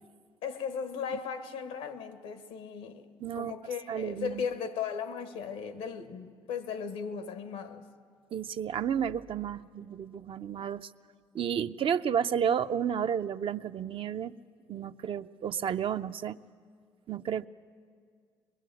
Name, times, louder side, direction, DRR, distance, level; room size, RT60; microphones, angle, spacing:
voice 1, 0.4-3.1 3.3-7.8, left 6 dB, 90° left, 1.4 m, -37 dB
voice 2, 3.2-3.5 3.9-4.4 8.3-10.9 11.3-14.4 14.7-16.4 17.1-17.5, right 8 dB, 55° right, 0.6 m, -31 dB
23.0 x 21.0 x 7.8 m
supercardioid pair, 70°, 11 cm